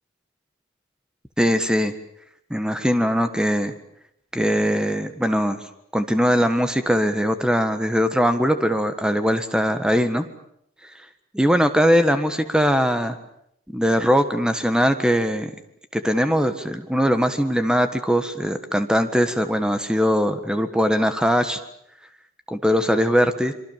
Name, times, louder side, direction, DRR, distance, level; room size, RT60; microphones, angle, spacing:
voice 1, 1.4-1.9 2.5-3.7 4.3-5.6 5.9-10.2 11.3-13.2 13.7-15.5 15.9-21.6 22.5-23.5, equal, 5° right, 9 dB, 1.6 m, -21 dB
26.0 x 24.5 x 7.4 m, 0.73 s
head